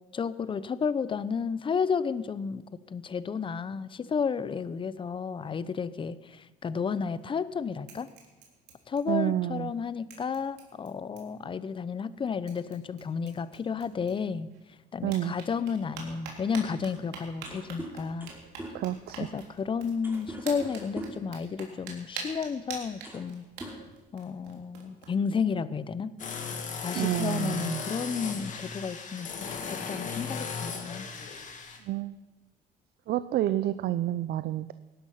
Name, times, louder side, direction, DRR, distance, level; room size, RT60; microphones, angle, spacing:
voice 1, 0.1-8.1 8.9-14.5 14.9-18.3 19.2-23.5 24.1-26.1 26.8-29.4 29.7-31.1, left 6 dB, 30° left, 16 dB, 0.7 m, -32 dB
sound 1, 7.0-7.5 7.8-9.4 9.7-9.8 10.1-11.5 12.1-12.2 12.5-14.6 15.0-25.1, right 5 dB, 85° right, 3.4 m, -46 dB
voice 2, 9.1-9.7 15.0-15.3 18.7-19.3 27.0-27.8 31.9-32.1 33.1-34.7, right 13 dB, 65° right, 14 dB, 0.6 m, -29 dB
sound 2, 17.4-21.3 22.3-22.5 22.9-23.3 23.6-24.5, right 1 dB, 10° right, 2.9 m, -42 dB
sound 3, 26.2-31.8, left 5 dB, 50° left, 2.3 m, -36 dB
18.0 x 11.5 x 5.7 m, 1.1 s
cardioid pair, 110°, 17 cm